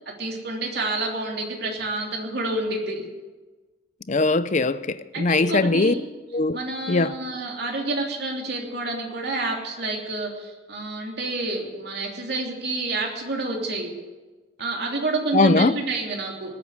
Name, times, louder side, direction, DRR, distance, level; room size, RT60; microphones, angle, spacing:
voice 1, 0.2-3.0 5.1-6.0 6.5-13.9 14.6-16.5, right 2 dB, 55° right, 3.1 m, -28 dB
voice 2, 4.1-5.9 6.3-6.6 6.9-7.1 15.3-15.8, left 3 dB, 40° left, 0.6 m, -20 dB
19.0 x 8.4 x 8.0 m
head